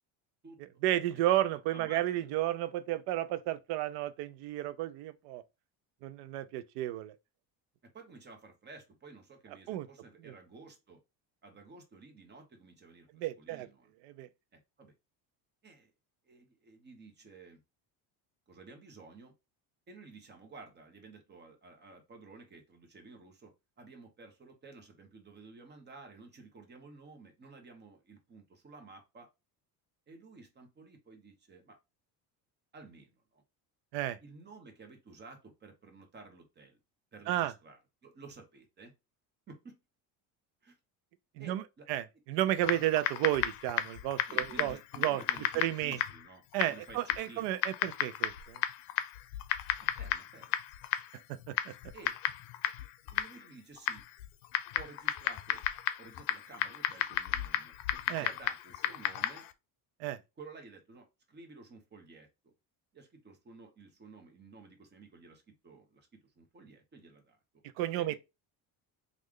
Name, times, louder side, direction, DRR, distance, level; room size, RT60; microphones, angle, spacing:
voice 1, 0.8-5.4 6.0-7.1 9.7-9.9 10.3-10.4 13.1-13.7 14.0-14.3 33.9-34.2 37.3-37.5 41.4-41.6 41.9-45.2 45.5-46.0 46.5-48.6 51.5-51.7 58.1-58.3 60.0-60.2 67.8-68.2, right 14 dB, 85° right, 0.6 m, -32 dB
voice 2, 1.7-2.3 7.8-11.0 11.4-13.9 14.5-14.9 15.6-15.9 16.3-17.6 18.5-19.3 19.9-29.3 30.1-31.8 32.7-33.4 34.2-36.8 37.1-38.9 39.5-39.8 40.6-40.8 41.4-41.9 44.3-46.4 46.7-47.7 49.8-50.6 51.9-52.2 53.1-54.0 54.7-55.6 56.0-57.7 58.1-59.5 60.4-62.5 62.9-67.4 67.9-68.2, right 3 dB, 25° right, 1.1 m, -53 dB
Typing, 42.6-59.5, left 13 dB, 75° left, 0.6 m, -35 dB
3.2 x 2.5 x 3.6 m
cardioid pair, 135°, 42 cm